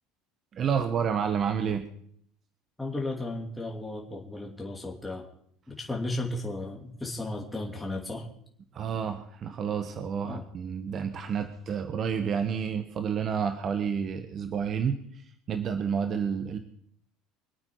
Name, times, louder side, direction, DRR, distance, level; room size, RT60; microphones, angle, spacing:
voice 1, 0.5-1.9 8.7-15.2 15.5-16.6, right 7 dB, 45° right, 8 dB, 1.2 m, -30 dB
voice 2, 2.8-5.2 5.7-8.3 10.2-10.4, left 2 dB, 10° left, -1 dB, 2.9 m, -34 dB
25.0 x 8.8 x 4.7 m, 0.65 s
hypercardioid pair, 85°, 0 cm